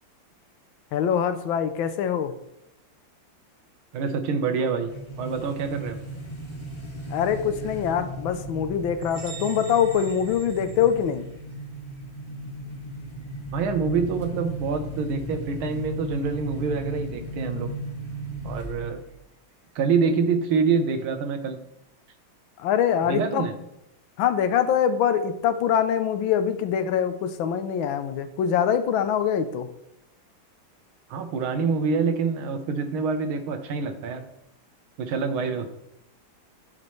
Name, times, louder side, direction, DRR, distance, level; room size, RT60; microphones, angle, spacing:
voice 1, 0.9-2.3 7.1-11.3 22.6-23.4 24.2-29.7, left 8 dB, 75° left, 10 dB, 1.4 m, -24 dB
voice 2, 3.9-4.9 5.2-6.0 13.5-17.7 18.4-19.0 19.8-21.6 23.1-23.5 31.1-34.2 35.0-35.7, right 5 dB, 85° right, 7 dB, 1.7 m, -26 dB
sound 1, 4.9-19.1, right 1 dB, 15° left, 1.1 m, -36 dB
sound 2, 9.0-11.6, right 5 dB, 65° right, 1.8 m, -44 dB
11.5 x 5.0 x 3.1 m, 0.83 s
omnidirectional pair, 2.2 m